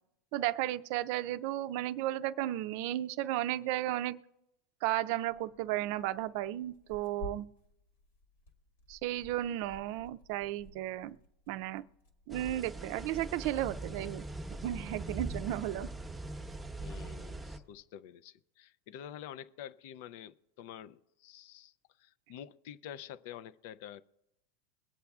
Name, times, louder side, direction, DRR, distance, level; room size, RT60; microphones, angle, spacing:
voice 1, 0.3-4.2 4.8-7.5 8.9-11.2 11.5-11.8 12.3-14.2 14.6-15.9, right 14 dB, 60° right, 0.4 m, -34 dB
Tearing, 5.2-17.8, left 1 dB, 80° left, 1.9 m, -55 dB
sound 1, 12.3-17.6, right 2 dB, 5° right, 0.9 m, -41 dB
voice 2, 16.8-21.7 22.0-24.0, left 10 dB, 65° left, 0.4 m, -48 dB
22.0 x 8.4 x 2.4 m
supercardioid pair, 125°, 0 cm